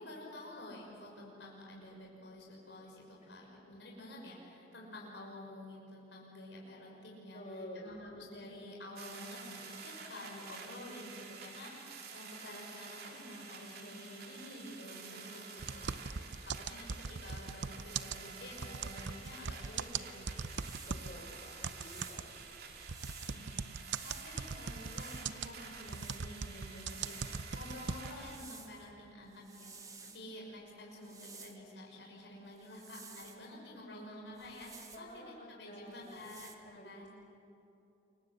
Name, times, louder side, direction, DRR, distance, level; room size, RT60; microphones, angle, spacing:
voice 1, 0.0-20.5 20.8-21.2 23.2-23.7 24.0-37.1, left 1 dB, 80° left, -2 dB, 6.2 m, -50 dB
voice 2, 7.3-8.1 20.9-22.7 34.9-36.3 36.7-37.2, left 1 dB, 45° left, 2 dB, 5.2 m, -51 dB
sound 1, 9.0-28.4, right 5 dB, 60° right, 3.3 m, -50 dB
sound 2, 15.6-21.2 21.6-28.3, right 5 dB, 85° right, 0.7 m, -40 dB
sound 3, 19.2-19.5 20.2-21.0 21.7-23.4 23.8-25.3 25.7-27.6 28.2-28.9 29.2-30.2 30.9-31.7 32.6-33.5 34.3-35.1 35.9-36.6, right 5 dB, 20° right, 1.8 m, -54 dB
28.5 x 24.5 x 8.1 m, 2.9 s
head